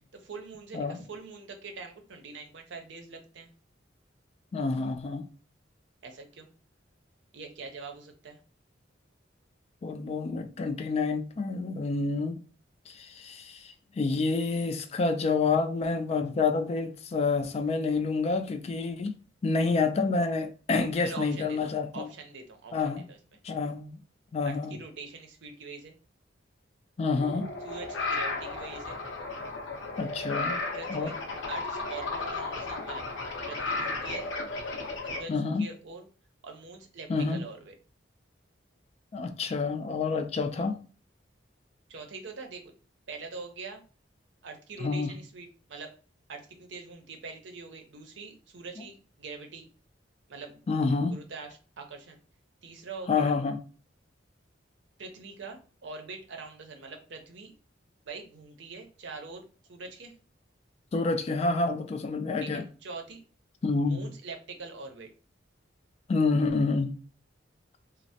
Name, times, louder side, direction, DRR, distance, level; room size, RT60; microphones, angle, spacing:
voice 1, 0.2-3.5 6.0-6.5 7.3-8.4 21.0-23.2 24.4-25.9 27.6-29.0 30.7-31.1 31.5-33.0 33.5-34.3 35.1-36.1 36.4-37.7 41.9-42.7 43.1-43.8 44.4-45.9 46.3-49.7 50.3-50.6 51.1-52.2 52.6-53.4 55.0-57.5 58.1-60.1 62.4-63.2 63.9-65.1, right 4 dB, 70° right, 0.6 m, -43 dB
voice 2, 4.5-5.2 9.8-12.4 12.9-19.1 19.4-22.1 22.7-23.0 23.4-24.0 24.3-24.8 27.0-27.5 30.0-30.6 30.9-31.1 35.3-35.6 37.1-37.4 39.1-40.9 44.8-45.1 48.8-48.9 50.7-51.2 53.1-53.6 60.9-62.6 63.6-64.1 66.1-67.0, left 4 dB, 35° left, 0.3 m, -28 dB
sound 1, 27.2-35.2, left 3 dB, 85° left, 0.6 m, -34 dB
3.1 x 2.0 x 2.6 m
head